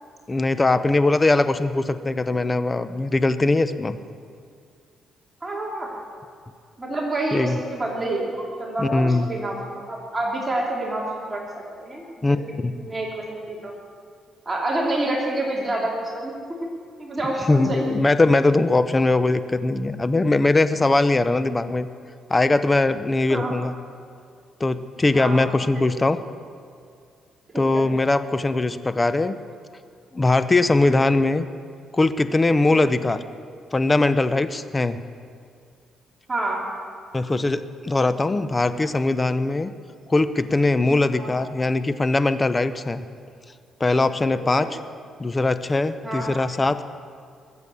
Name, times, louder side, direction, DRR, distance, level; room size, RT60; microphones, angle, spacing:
voice 1, 0.3-4.0 7.3-7.6 8.8-9.3 12.2-12.4 12.6-12.7 17.5-21.9 22.3-23.7 24.6-26.2 27.5-29.4 30.1-31.5 31.9-33.2 33.7-35.0 37.1-39.7 40.1-43.1 43.8-44.7 45.2-46.8, left 2 dB, 20° left, 12 dB, 0.7 m, -21 dB
voice 2, 5.4-5.9 6.8-11.4 11.8-12.0 12.5-13.7 14.4-16.3 17.0-17.8 23.3-23.5 25.1-25.4 25.7-25.9 27.5-27.8 30.8-31.0 32.7-32.9 36.3-36.6 41.1-41.3 44.2-44.7 46.0-46.3, right 2 dB, 25° right, -2 dB, 2.9 m, -28 dB
21.0 x 8.2 x 7.0 m, 2.3 s
cardioid pair, 90°, 0 cm